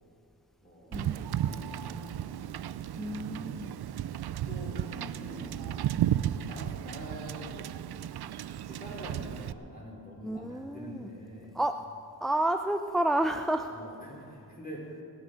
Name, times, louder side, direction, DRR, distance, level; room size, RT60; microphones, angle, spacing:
voice 1, 0.6-2.6 3.2-3.6 4.5-5.7 6.5-7.8 8.7-11.6 13.7-14.9, equal, 20° left, -3 dB, 4.8 m, -45 dB
Wind / Boat Water vehicle, 0.9-9.5, right 11 dB, 75° right, 0.5 m, -34 dB
voice 2, 3.0-3.8 10.2-11.1 11.5-11.9 12.2-13.7, right 1 dB, ahead, 7 dB, 0.5 m, -30 dB
19.0 x 10.0 x 6.5 m, 2.6 s
cardioid pair, 70°, 39 cm